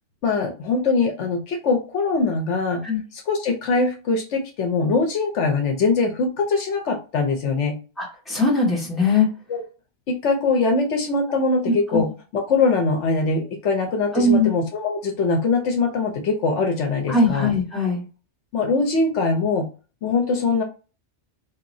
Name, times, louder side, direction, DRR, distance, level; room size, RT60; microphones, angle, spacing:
voice 1, 0.2-2.8 3.1-7.8 9.5-9.6 10.1-17.5 18.5-19.7 20.0-20.6, left 3 dB, 70° left, 3 dB, 1.1 m, -22 dB
voice 2, 8.0-9.3 11.6-12.0 14.1-14.5 17.1-18.0, left 2 dB, ahead, -4 dB, 1.5 m, -20 dB
4.0 x 2.9 x 2.6 m, 0.33 s
omnidirectional pair, 1.3 m